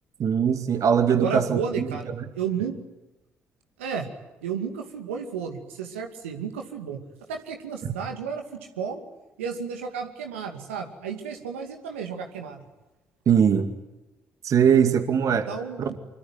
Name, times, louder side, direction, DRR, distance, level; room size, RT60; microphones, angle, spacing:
voice 1, 0.2-2.3 7.8-8.0 13.3-13.7 14.4-15.5 15.8-16.0, right 7 dB, 55° right, 8 dB, 2.1 m, -21 dB
voice 2, 1.1-2.1 2.3-2.7 3.8-4.1 4.4-7.0 7.3-9.0 9.4-12.6 15.5-15.9, right 6 dB, 85° right, 4 dB, 2.5 m, -32 dB
25.0 x 24.0 x 9.5 m, 1.0 s
hypercardioid pair, 45°, 7 cm